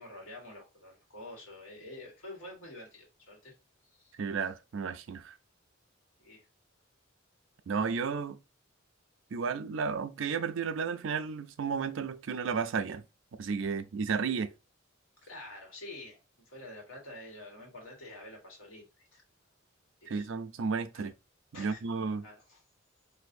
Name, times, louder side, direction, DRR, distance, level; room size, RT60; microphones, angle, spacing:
voice 1, 0.0-3.5 3.9-4.2 6.2-6.4 15.3-16.2 16.4-19.2 20.0-20.3 20.9-21.1 21.5-21.8 22.2-22.6, left 1 dB, 90° left, 1.7 m, -48 dB
voice 2, 4.2-5.3 7.7-8.4 9.3-13.0 13.4-14.5 20.1-21.1 21.6-22.2, right 5 dB, 70° right, 0.4 m, -33 dB
4.0 x 2.6 x 2.6 m
head